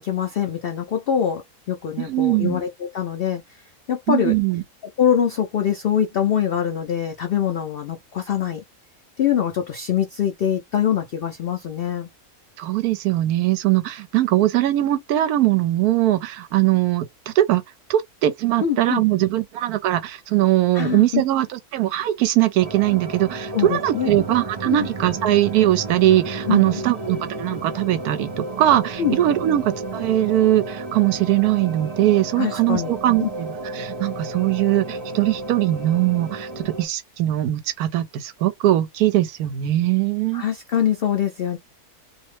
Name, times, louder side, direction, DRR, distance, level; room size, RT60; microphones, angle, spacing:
voice 1, 0.0-1.4 1.7-3.4 3.9-4.3 5.0-8.6 9.2-12.1 18.6-19.0 20.7-21.2 23.5-24.1 24.7-24.8 26.5-26.7 29.0-29.2 32.3-32.9 33.2-33.3 40.3-41.6, left 9 dB, 90° left, 0.5 m, -23 dB
voice 2, 2.0-2.6 4.1-4.6 12.6-17.6 17.9-33.5 33.7-40.4, right 14 dB, 80° right, 1.1 m, -21 dB
sound 1, 22.6-36.8, right 2 dB, 45° right, 0.4 m, -33 dB
2.7 x 2.0 x 3.1 m
omnidirectional pair, 1.6 m